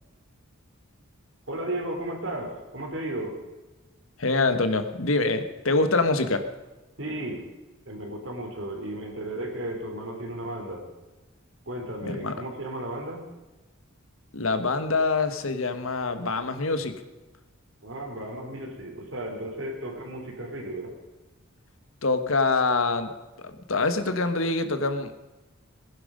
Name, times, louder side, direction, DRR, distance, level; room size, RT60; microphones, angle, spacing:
voice 1, 1.5-3.4 7.0-7.5 7.9-10.8 11.7-13.3 17.8-20.9, right 1 dB, 65° right, 2 dB, 3.4 m, -34 dB
voice 2, 4.2-6.4 12.0-12.3 14.3-16.9 22.0-23.1 23.7-25.1, left 3 dB, 80° left, 9 dB, 1.4 m, -25 dB
19.0 x 11.0 x 5.2 m, 1.2 s
head